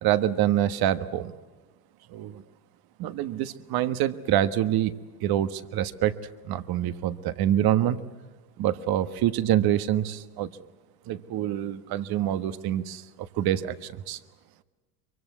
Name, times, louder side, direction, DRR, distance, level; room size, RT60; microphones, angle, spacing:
voice 1, 0.0-1.3 2.1-2.4 3.0-4.9 5.2-6.2 6.4-8.0 8.6-10.5 11.1-13.0 13.4-14.2, right 12 dB, 50° right, 13 dB, 1.5 m, -26 dB
24.0 x 24.0 x 8.2 m, 1.2 s
hypercardioid pair, 95°, 46 cm